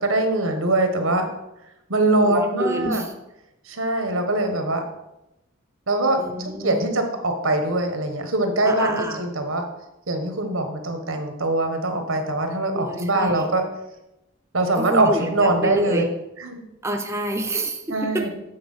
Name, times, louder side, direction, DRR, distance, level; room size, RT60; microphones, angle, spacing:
voice 1, 0.0-1.3 1.9-3.0 3.7-4.8 5.9-6.2 6.4-9.6 10.1-13.6 14.5-16.0 16.4-16.6 17.9-18.3, right 2 dB, 85° right, 5 dB, 1.4 m, -22 dB
voice 2, 2.3-3.1 6.2-7.0 8.7-9.2 12.7-13.5 14.7-16.1 16.8-18.3, right 1 dB, 15° right, 3 dB, 0.6 m, -28 dB
8.7 x 4.6 x 5.6 m, 0.91 s
head